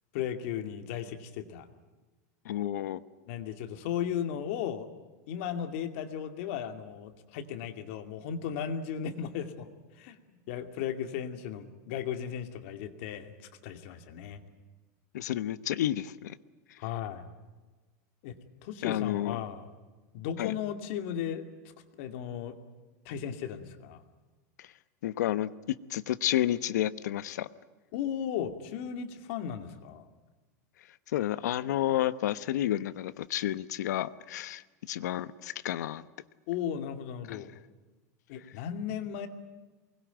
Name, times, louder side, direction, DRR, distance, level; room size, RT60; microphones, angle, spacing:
voice 1, 0.1-1.7 3.3-4.9 5.3-9.7 10.0-13.3 13.6-14.4 16.8-17.3 18.2-18.3 18.6-19.6 20.1-21.5 22.0-22.6 23.1-24.0 27.9-30.1 36.5-37.5 38.3-39.3, left 9 dB, 45° left, 7 dB, 2.4 m, -35 dB
voice 2, 2.4-3.0 15.1-16.3 18.8-19.4 20.4-20.5 25.0-27.5 31.1-36.0 37.3-37.4, left 12 dB, 85° left, 14 dB, 1.1 m, -31 dB
24.0 x 21.0 x 9.2 m, 1.3 s
supercardioid pair, 175°, 9 cm